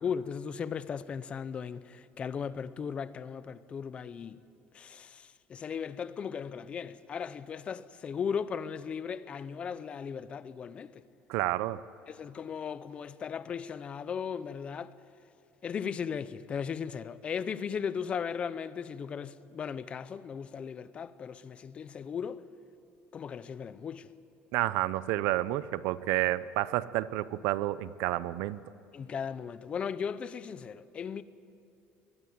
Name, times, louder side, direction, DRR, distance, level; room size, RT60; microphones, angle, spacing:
voice 1, 0.0-4.4 4.7-11.0 12.1-14.9 15.6-22.4 23.1-24.1 28.9-31.2, left 7 dB, 25° left, 0.6 m, -37 dB
voice 2, 11.3-11.8 24.5-28.6, right 16 dB, 85° right, 0.7 m, -30 dB
22.5 x 20.5 x 9.6 m
cardioid pair, 165°, 4 cm